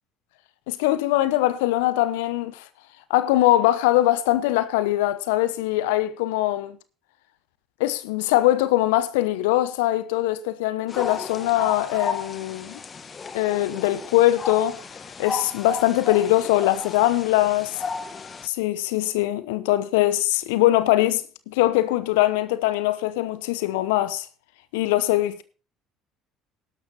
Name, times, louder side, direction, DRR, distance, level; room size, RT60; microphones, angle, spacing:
voice 1, 0.7-2.6 3.1-6.8 7.8-12.8 13.3-14.8 15.2-17.8 18.4-24.3 24.7-25.4, left 15 dB, 70° left, 0.9 m, -22 dB
sound 1, 10.9-18.5, left 5 dB, 35° left, 1.3 m, -33 dB
12.0 x 12.0 x 4.3 m
figure-of-eight pair, 60°, 0 cm